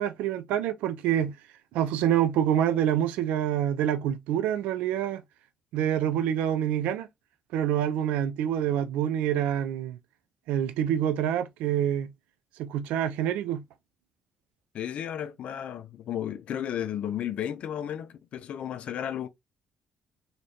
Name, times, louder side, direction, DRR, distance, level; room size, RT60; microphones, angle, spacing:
voice 1, 0.0-1.3 1.7-5.2 5.7-7.1 7.5-10.0 10.5-12.1 12.6-13.6, right 10 dB, 60° right, 0.4 m, -26 dB
voice 2, 14.7-19.3, left 10 dB, 50° left, 0.4 m, -33 dB
3.0 x 2.8 x 2.5 m
figure-of-eight pair, 45°, 3 cm